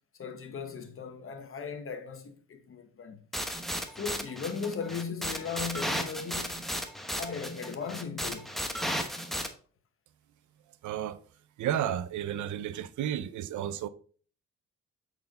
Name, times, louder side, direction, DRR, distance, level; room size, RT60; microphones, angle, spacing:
voice 1, 0.2-3.2 3.9-6.6 7.1-8.5, left 6 dB, 45° left, 1.3 m, -37 dB
sound 1, 3.3-9.5, equal, ahead, 1.1 m, -34 dB
voice 2, 10.8-11.2 11.6-13.9, right 10 dB, 75° right, 0.6 m, -32 dB
7.9 x 4.6 x 3.8 m
cardioid pair, 90°, 30 cm